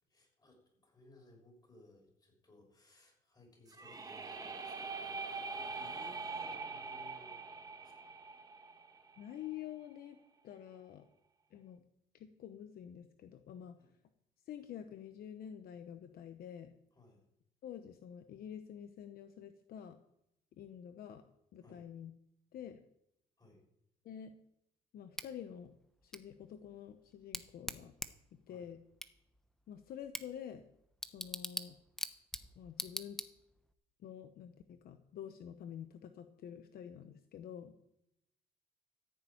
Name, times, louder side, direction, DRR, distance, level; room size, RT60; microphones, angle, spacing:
voice 1, 0.1-7.5 7.8-8.1 13.8-13.9 16.9-17.2 21.6-21.9 23.4-23.6 28.5-28.7, left 1 dB, 25° left, 1 dB, 6.6 m, -62 dB
sound 1, 3.7-9.5, right 4 dB, 20° right, 1.4 m, -43 dB
voice 2, 9.2-11.1 11.5-11.8 12.1-13.8 14.4-16.7 17.6-20.0 20.6-21.2 21.5-22.1 22.5-22.8 24.0-24.3 24.9-25.7 26.0-27.9 28.3-28.8 29.7-30.7 31.1-31.8 32.6-33.2 34.0-37.7, left 9 dB, 65° left, 8 dB, 1.0 m, -48 dB
Bicycle / Tick, 25.2-33.7, equal, 5° left, 0.9 m, -46 dB
14.5 x 7.0 x 8.8 m, 0.79 s
cardioid pair, 110°, 17 cm